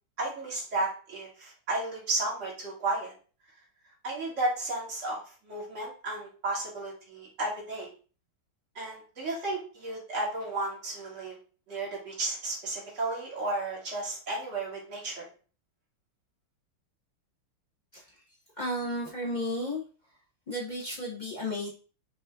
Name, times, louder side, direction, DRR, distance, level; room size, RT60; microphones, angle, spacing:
voice 1, 0.2-3.1 4.0-7.9 8.8-11.4 11.7-15.3, right 2 dB, 35° right, -5 dB, 1.9 m, -33 dB
voice 2, 18.6-19.8 20.5-21.7, left 1 dB, 60° left, -5 dB, 0.4 m, -33 dB
6.3 x 2.6 x 2.3 m, 0.38 s
omnidirectional pair, 2.4 m